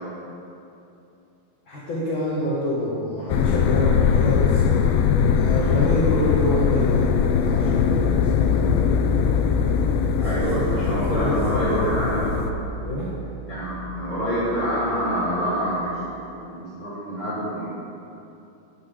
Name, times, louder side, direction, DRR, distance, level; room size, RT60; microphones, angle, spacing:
voice 1, 1.7-8.6 10.2-11.8 12.8-13.1, left 1 dB, 55° left, -8 dB, 1.4 m, -27 dB
sound 1, 3.3-12.5, left 7 dB, 80° left, 2.1 m, -21 dB
sound 2, 7.4-16.1, left 3 dB, 60° right, 2.1 m, -30 dB
voice 2, 10.2-12.3 13.5-17.6, equal, 20° left, -14 dB, 1.6 m, -26 dB
10.5 x 8.7 x 3.7 m, 2.8 s
omnidirectional pair, 4.4 m